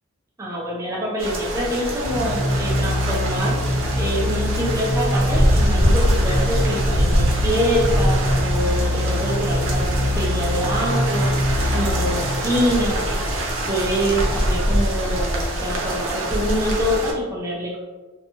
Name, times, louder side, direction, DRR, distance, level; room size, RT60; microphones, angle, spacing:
voice 1, 0.4-3.6 4.0-11.4 11.7-17.8, equal, 15° right, -4 dB, 0.4 m, -25 dB
sound 1, 1.2-17.1, right 1 dB, 70° right, 0.5 m, -24 dB
sound 2, 2.0-12.7, left 1 dB, 50° left, 1.1 m, -24 dB
sound 3, 7.9-15.3, left 1 dB, 25° left, 1.1 m, -39 dB
2.8 x 2.2 x 2.7 m, 1.3 s
head